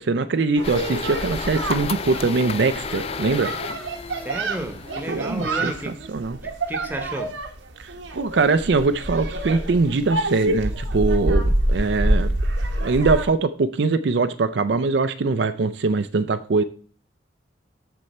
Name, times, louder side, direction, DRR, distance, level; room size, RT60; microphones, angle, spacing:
voice 1, 0.0-3.5 5.1-6.4 7.8-12.3 12.8-16.6, right 3 dB, 65° right, 0.4 m, -22 dB
sound 1, 0.6-5.9, left 5 dB, 30° left, 0.3 m, -33 dB
sound 2, 0.6-13.3, right 1 dB, 85° right, 1.2 m, -27 dB
voice 2, 4.1-6.0 6.4-7.4, right 1 dB, 10° right, 0.9 m, -32 dB
13.0 x 4.4 x 4.2 m
head